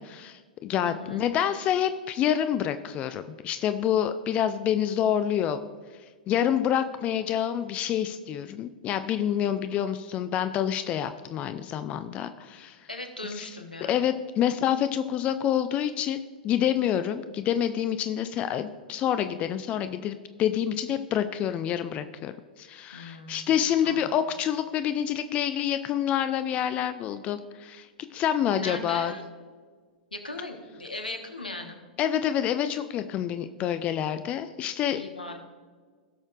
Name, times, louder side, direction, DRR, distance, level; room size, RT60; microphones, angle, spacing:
voice 1, 0.0-5.6 6.3-12.8 13.4-13.5 13.9-16.2 16.4-22.3 22.6-27.9 28.1-29.1 32.0-35.0, left 10 dB, 25° left, 11 dB, 0.4 m, -27 dB
voice 2, 0.8-1.3 12.9-14.0 22.9-24.0 28.5-29.2 30.1-31.8 34.9-35.4, left 2 dB, 85° left, 5 dB, 1.2 m, -38 dB
17.5 x 6.5 x 2.5 m, 1.6 s
figure-of-eight pair, 100°, 5 cm